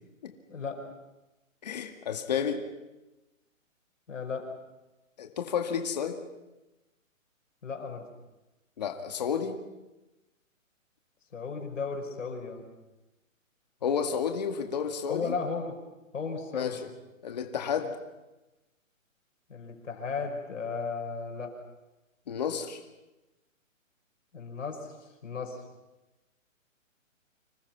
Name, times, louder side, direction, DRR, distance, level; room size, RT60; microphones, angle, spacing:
voice 1, 0.5-0.8 4.1-4.5 7.6-8.1 11.3-12.7 15.1-15.8 16.1-16.8 19.5-21.5 24.3-24.9 25.2-25.6, left 4 dB, 65° left, 3 dB, 5.6 m, -35 dB
voice 2, 1.6-2.6 5.2-6.2 8.8-9.6 13.8-15.3 16.5-16.8 17.2-18.0 22.3-22.8, left 7 dB, 30° left, 5 dB, 2.0 m, -31 dB
29.5 x 26.5 x 6.0 m, 1.0 s
hypercardioid pair, 180°, 40 cm